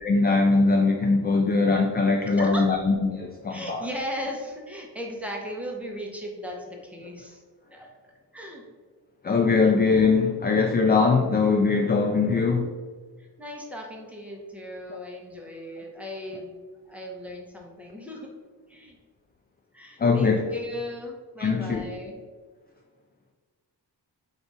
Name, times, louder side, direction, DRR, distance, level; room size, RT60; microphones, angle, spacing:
voice 1, 0.0-3.8 9.2-12.7 20.0-20.4 21.4-21.8, left 4 dB, 25° left, 3 dB, 0.3 m, -21 dB
voice 2, 2.3-2.7 3.5-7.4 7.7-7.9 8.3-8.6 13.2-18.3 18.7-19.0 19.7-22.2, equal, 5° right, -1 dB, 0.9 m, -37 dB
3.9 x 2.6 x 4.7 m, 1.4 s
cardioid pair, 95°, 43 cm